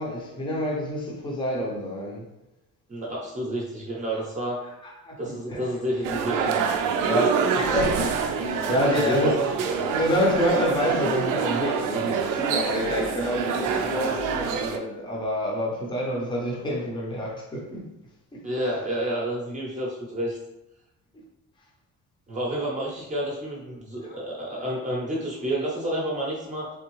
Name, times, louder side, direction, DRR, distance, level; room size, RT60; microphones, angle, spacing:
voice 1, 0.0-2.3 4.1-4.2 4.8-6.1 7.0-17.9 18.3-18.7 24.0-24.2, equal, 15° left, 0.7 m, -28 dB
voice 2, 2.9-4.6 5.2-6.6 9.0-9.3 18.4-20.4 22.3-26.7, right 1 dB, 20° right, 0.8 m, -30 dB
sound 1, 6.0-14.8, right 6 dB, 70° right, 0.5 m, -26 dB
3.5 x 3.4 x 3.1 m
cardioid pair, 165°, 33 cm